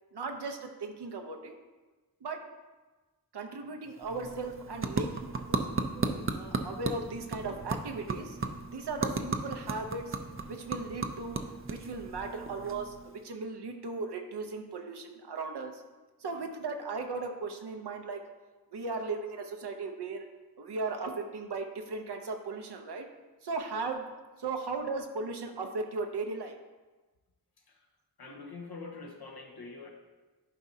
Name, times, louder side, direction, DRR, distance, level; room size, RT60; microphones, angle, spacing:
voice 1, 0.1-1.6 2.2-2.6 3.3-8.4 8.7-10.2 10.5-11.4 11.7-15.8 16.2-18.2 18.7-20.3 20.6-23.1 23.4-24.1 24.4-26.6, right 3 dB, 80° right, 4 dB, 0.8 m, -37 dB
sound 1, 3.8-13.3, right 3 dB, 35° right, 0.6 m, -36 dB
voice 2, 28.2-29.9, left 3 dB, 70° left, 1 dB, 1.2 m, -45 dB
11.0 x 4.7 x 2.8 m, 1.2 s
wide cardioid pair, 55°, 39 cm